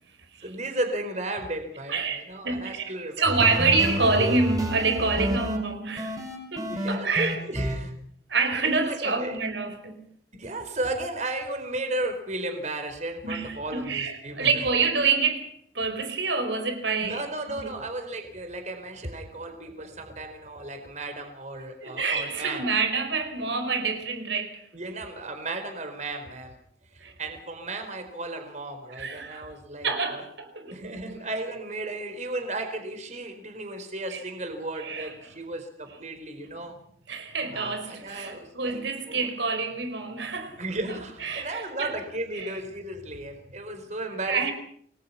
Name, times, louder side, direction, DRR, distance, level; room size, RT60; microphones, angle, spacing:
voice 1, 0.4-3.6 6.7-7.9 8.6-9.4 10.4-14.6 17.0-22.7 23.7-23.8 24.7-26.6 26.9-30.2 30.7-36.7 37.5-38.8 39.1-39.3 40.6-44.5, right 2 dB, 40° right, 4.6 m, -34 dB
voice 2, 1.9-2.9 3.2-6.2 6.5-7.4 8.3-10.1 13.2-17.2 17.5-17.7 21.8-24.7 27.0-27.1 29.0-29.5 29.8-30.9 34.1-34.2 34.8-35.1 37.1-40.6 41.2-41.9 42.3-42.5 44.3-44.5, right 4 dB, 75° right, 4.8 m, -27 dB
sound 1, 3.3-5.6 6.0-7.8, equal, 20° right, 6.2 m, -29 dB
28.5 x 20.5 x 5.7 m
head